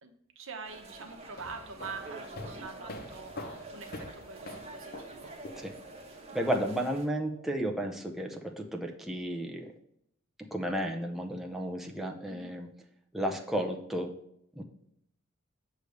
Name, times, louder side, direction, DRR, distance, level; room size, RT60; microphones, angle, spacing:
voice 1, 0.0-5.3 12.2-12.5, right 5 dB, 65° right, 5 dB, 1.0 m, -45 dB
sound 1, 0.6-7.1, right 2 dB, 30° right, 1.1 m, -48 dB
sound 2, 1.2-6.1, left 2 dB, 45° left, 0.7 m, -45 dB
sound 3, 1.9-7.8, right 4 dB, 50° right, 1.6 m, -52 dB
voice 2, 6.3-9.7 10.4-12.7 13.1-14.1 14.5-14.6, right 1 dB, ahead, 1 dB, 0.6 m, -33 dB
8.1 x 3.3 x 6.4 m, 0.74 s
head